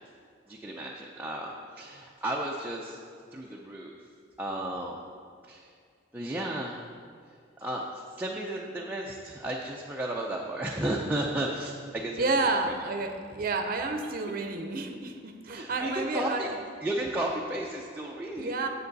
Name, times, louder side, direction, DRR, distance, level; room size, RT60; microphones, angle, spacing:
voice 1, 0.5-3.0 3.3-4.0 4.4-5.0 5.5-5.7 6.1-6.9 7.6-7.9 8.2-12.3 15.5-16.5 16.8-18.6, right 1 dB, 10° right, -2 dB, 0.5 m, -33 dB
voice 2, 12.2-16.6 18.4-18.7, right 3 dB, 50° right, 4 dB, 0.7 m, -30 dB
9.4 x 7.8 x 4.0 m, 2.2 s
head